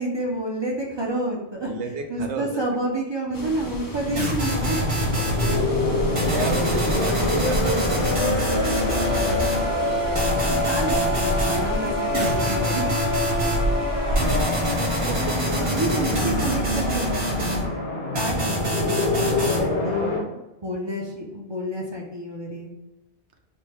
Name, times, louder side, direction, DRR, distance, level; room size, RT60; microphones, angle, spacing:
voice 1, 0.0-1.7 2.1-4.8 8.9-12.9 15.3-17.6 18.1-22.7, right 1 dB, 35° right, -2 dB, 0.4 m, -30 dB
voice 2, 1.7-2.9 5.8-8.4 14.1-14.5 15.0-15.7, right 3 dB, 85° right, 4 dB, 0.9 m, -31 dB
sound 1, 3.3-17.5, equal, 35° left, 0.3 m, -31 dB
sound 2, 4.2-5.6 6.2-9.7 10.2-11.6 12.1-13.6 14.2-17.7 18.2-19.6, equal, 65° right, 1.6 m, -26 dB
sound 3, 4.5-20.2, left 2 dB, 65° left, 1.2 m, -26 dB
3.4 x 2.2 x 4.2 m, 0.99 s
omnidirectional pair, 1.1 m